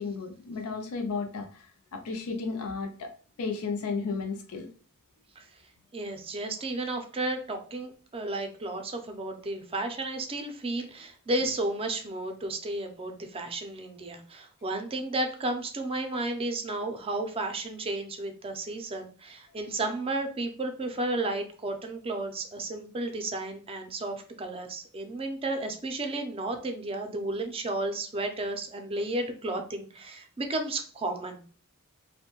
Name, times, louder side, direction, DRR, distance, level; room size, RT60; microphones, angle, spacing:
voice 1, 0.0-3.1 3.4-4.7 11.4-11.5 19.8-19.9, left 4 dB, 75° left, 4 dB, 0.4 m, -34 dB
voice 2, 5.9-31.5, right 2 dB, 25° right, 5 dB, 0.4 m, -33 dB
2.6 x 2.1 x 2.9 m, 0.40 s
head